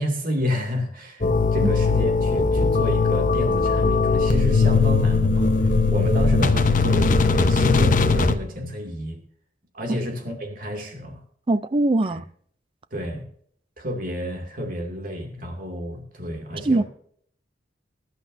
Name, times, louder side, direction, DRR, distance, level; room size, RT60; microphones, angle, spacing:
voice 1, 0.0-9.2 9.7-11.2 12.9-13.2 13.8-16.8, left 1 dB, 50° right, 2.4 m, -30 dB
sound 1, 1.2-8.3, left 4 dB, 45° left, 0.8 m, -19 dB
voice 2, 11.5-12.2 16.6-16.8, right 2 dB, 30° right, 0.4 m, -21 dB
20.5 x 10.5 x 2.7 m
head